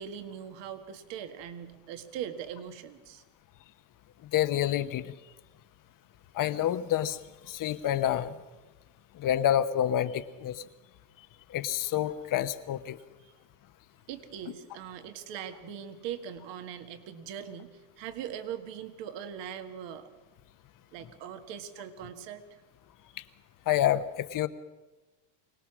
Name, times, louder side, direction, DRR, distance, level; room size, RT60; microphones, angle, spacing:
voice 1, 0.0-3.2 13.2-13.3 14.1-20.1 20.9-22.6, right 9 dB, 60° right, 8 dB, 1.9 m, -41 dB
voice 2, 4.3-5.1 6.3-7.2 7.5-8.3 9.2-10.6 11.5-13.0 23.7-24.5, left 11 dB, 40° left, 12 dB, 1.1 m, -28 dB
24.5 x 18.0 x 6.2 m, 1.1 s
supercardioid pair, 125°, 49 cm